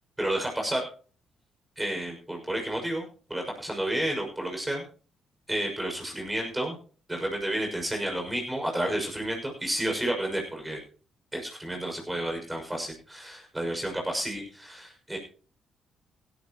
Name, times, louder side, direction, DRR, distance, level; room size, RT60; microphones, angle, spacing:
voice 1, 0.2-0.8 1.8-4.8 5.5-6.8 7.1-10.8 11.3-15.2, right 1 dB, 10° right, 1 dB, 6.3 m, -31 dB
16.5 x 14.0 x 3.1 m, 0.40 s
cardioid pair, 90°, 0 cm